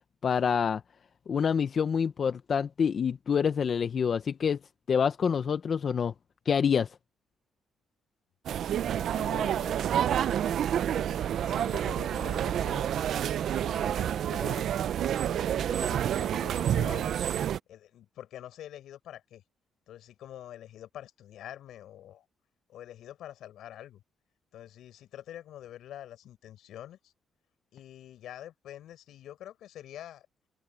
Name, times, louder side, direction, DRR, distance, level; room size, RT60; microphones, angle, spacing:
voice 1, 0.2-0.8 1.3-4.6 4.9-6.1 6.5-6.9, left 7 dB, 50° left, 0.8 m, -27 dB
voice 2, 8.5-9.8 10.8-13.1 13.6-14.7 15.3-17.2 17.7-19.4 19.9-22.3 22.7-24.0 24.5-27.1 27.7-30.3, left 12 dB, 80° left, 5.9 m, -46 dB
sound 1, 8.5-17.6, right 10 dB, 70° right, 0.5 m, -29 dB
cardioid pair, 90°, 0 cm